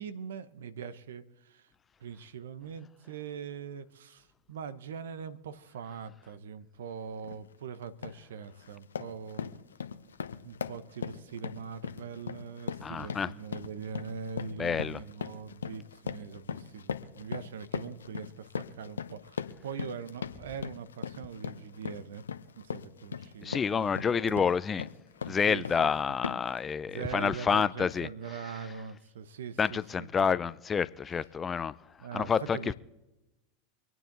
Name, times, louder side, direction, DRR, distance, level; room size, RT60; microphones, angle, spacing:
voice 1, 0.0-1.7 2.0-9.5 10.4-22.2 22.6-24.4 25.3-25.9 26.8-30.4 32.0-32.7, right 6 dB, 75° right, 0.9 m, -42 dB
sound 1, 7.2-7.4 7.8-8.2 8.6-25.9 26.2-26.6, left 7 dB, 85° left, 0.8 m, -39 dB
voice 2, 12.8-13.3 14.6-15.0 23.4-24.9 25.2-28.1 29.6-31.7 32.1-32.7, left 6 dB, 25° left, 0.5 m, -28 dB
25.5 x 9.2 x 4.0 m
hypercardioid pair, 95°, 0 cm